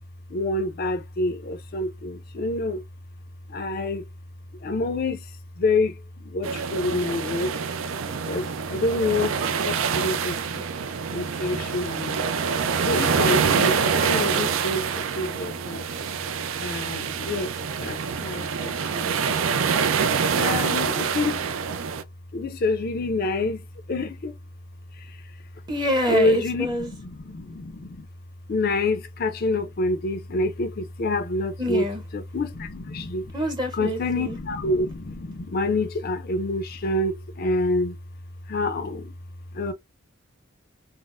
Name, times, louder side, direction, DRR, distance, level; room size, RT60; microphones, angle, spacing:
voice 1, 0.3-2.8 3.5-4.0 4.6-5.2 5.6-5.9 6.3-7.5 8.3-9.4 9.6-10.6 11.1-12.2 12.9-15.8 16.6-17.5 17.8-19.1 20.3-21.5 22.3-23.6 23.9-24.3 26.1-26.7 27.3-28.1 28.5-31.8 32.1-33.3 33.8-37.9 38.5-39.1 39.5-39.7, left 2 dB, 45° left, 0.5 m, -27 dB
sound 1, 6.4-22.0, right 6 dB, 70° right, 0.4 m, -26 dB
voice 2, 25.7-26.9 31.6-32.0 33.3-34.4, equal, 20° right, 0.7 m, -26 dB
4.0 x 2.0 x 2.4 m
head